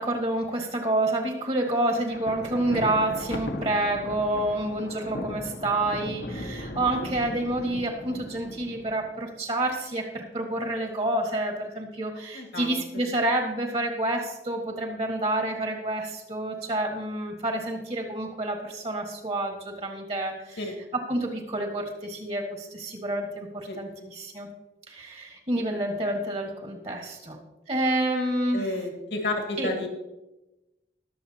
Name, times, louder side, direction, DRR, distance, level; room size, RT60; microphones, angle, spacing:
voice 1, 0.0-20.6 21.1-24.5 24.9-27.4 27.7-28.7 29.6-29.7, right 1 dB, 35° right, 2 dB, 1.7 m, -28 dB
Thunder, 2.0-9.2, left 1 dB, 65° left, 1.1 m, -37 dB
voice 2, 12.3-13.0 20.6-20.8 23.7-24.1 25.7-25.8 28.5-29.9, left 2 dB, 80° left, 2 dB, 2.3 m, -32 dB
20.5 x 7.2 x 2.8 m, 0.99 s
head